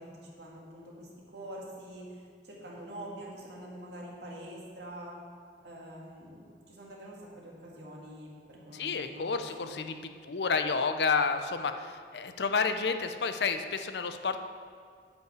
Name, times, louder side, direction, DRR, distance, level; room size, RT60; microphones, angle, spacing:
voice 1, 0.0-5.2 5.6-9.9, right 1 dB, 70° right, -3 dB, 2.1 m, -45 dB
voice 2, 8.7-14.4, left 5 dB, 70° left, 8 dB, 0.6 m, -30 dB
8.7 x 5.5 x 8.0 m, 2.2 s
head